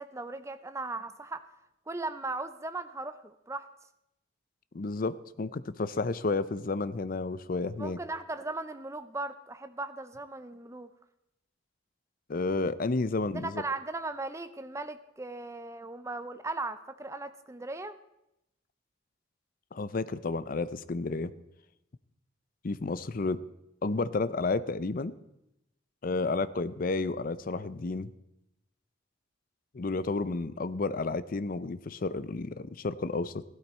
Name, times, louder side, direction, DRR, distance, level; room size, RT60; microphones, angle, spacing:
voice 1, 0.0-1.5 1.9-3.7 7.8-10.9 13.3-18.0, right 2 dB, 15° right, 11 dB, 0.6 m, -37 dB
voice 2, 4.7-8.0 12.3-13.6 19.7-21.3 22.6-23.4 23.8-25.2 26.0-28.1 29.7-33.4, left 3 dB, 45° left, 15 dB, 0.5 m, -31 dB
16.0 x 12.5 x 4.4 m, 0.86 s
head